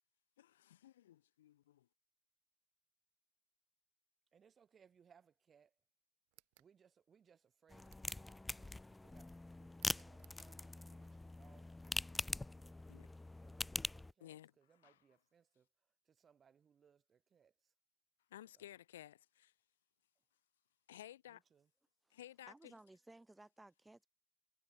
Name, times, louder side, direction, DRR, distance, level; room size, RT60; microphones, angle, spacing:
voice 1, 0.4-1.9 12.9-13.1 14.2-15.2 18.3-19.5 20.9-21.4 22.1-22.7, left 12 dB, 75° left, 0.4 m, -56 dB
voice 2, 4.3-5.7 6.6-9.3 9.6-12.8 13.4-15.7 16.2-17.5 21.5-21.6, right 7 dB, 40° right, 3.5 m, -70 dB
sound 1, 6.3-6.7 7.8-8.3 9.7-10.5, right 40 dB or more, 65° right, 0.9 m, -68 dB
sound 2, 7.7-14.1, left 2 dB, 15° left, 0.5 m, -44 dB
voice 3, 22.5-24.1, right 2 dB, 10° right, 3.9 m, -59 dB
figure-of-eight pair, 55°, 0 cm